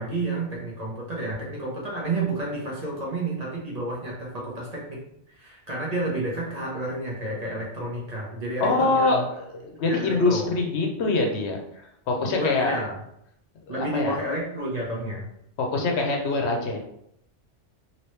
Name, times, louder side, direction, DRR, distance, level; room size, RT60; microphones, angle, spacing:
voice 1, 0.0-5.0 5.3-9.2 9.9-10.4 12.4-12.9 13.7-15.2, right 2 dB, 40° right, -4 dB, 0.8 m, -30 dB
voice 2, 8.6-9.2 9.5-11.6 12.1-12.8 13.7-14.2 15.6-16.8, left 3 dB, 70° left, 1 dB, 0.9 m, -24 dB
3.0 x 2.8 x 3.1 m, 0.76 s
omnidirectional pair, 1.2 m